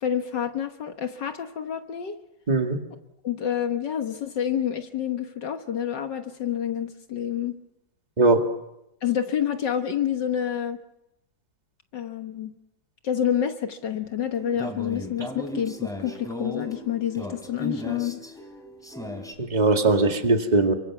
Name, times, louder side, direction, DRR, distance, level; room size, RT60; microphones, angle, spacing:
voice 1, 0.0-2.2 3.2-7.6 9.0-10.8 11.9-12.5 13.0-18.2, left 9 dB, 70° left, 6 dB, 1.9 m, -28 dB
voice 2, 2.5-2.8 8.2-8.4 19.4-20.7, right 2 dB, 20° right, 4 dB, 2.0 m, -20 dB
sound 1, 14.3-19.3, left 1 dB, ahead, 3.6 m, -36 dB
29.5 x 24.5 x 6.1 m, 0.86 s
omnidirectional pair, 2.0 m